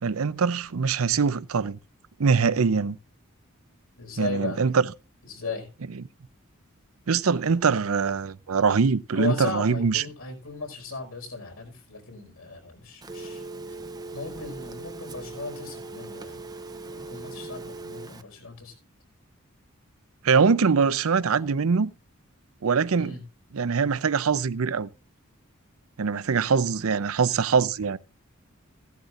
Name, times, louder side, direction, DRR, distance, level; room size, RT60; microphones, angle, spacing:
voice 1, 0.0-1.8 2.2-3.0 4.2-4.9 5.9-6.1 7.1-10.1 20.2-21.9 22.6-23.2 23.5-24.9 26.0-28.0, right 5 dB, 80° right, 0.6 m, -23 dB
voice 2, 4.0-4.6 5.3-5.7 9.1-13.4 14.1-16.4 16.9-18.7 23.0-23.2, left 3 dB, 80° left, 5.1 m, -36 dB
Telephone, 13.0-18.2, right 3 dB, 20° right, 0.7 m, -39 dB
15.5 x 12.0 x 2.5 m
head